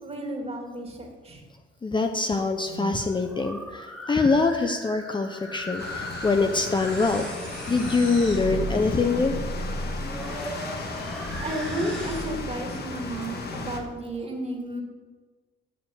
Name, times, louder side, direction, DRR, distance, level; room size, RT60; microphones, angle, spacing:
voice 1, 0.0-1.4 11.4-14.8, right 1 dB, 30° right, 1 dB, 2.1 m, -33 dB
voice 2, 1.8-7.3 7.7-9.4, left 3 dB, 25° left, 6 dB, 0.7 m, -24 dB
sound 1, 2.6-12.5, right 1 dB, 5° left, 2.3 m, -36 dB
sound 2, 5.8-13.8, left 3 dB, 55° left, 1.4 m, -35 dB
7.5 x 6.9 x 6.9 m, 1.4 s
cardioid pair, 90°, 20 cm